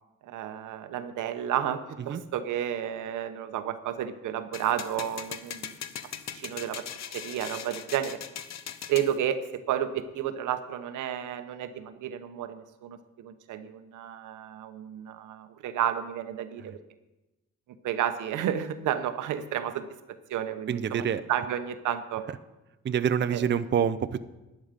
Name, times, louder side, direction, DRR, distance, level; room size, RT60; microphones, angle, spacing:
voice 1, 0.2-5.7 6.3-6.9 7.1-8.2 8.9-16.8 17.8-22.2 23.3-23.4, right 10 dB, 80° right, 10 dB, 1.0 m, -32 dB
sound 1, 4.5-9.1, left 9 dB, 60° left, 1.0 m, -40 dB
voice 2, 20.7-21.2 22.8-24.2, right 8 dB, 40° right, 12 dB, 0.5 m, -27 dB
11.0 x 10.5 x 5.1 m, 1.0 s
cardioid pair, 90°, 30 cm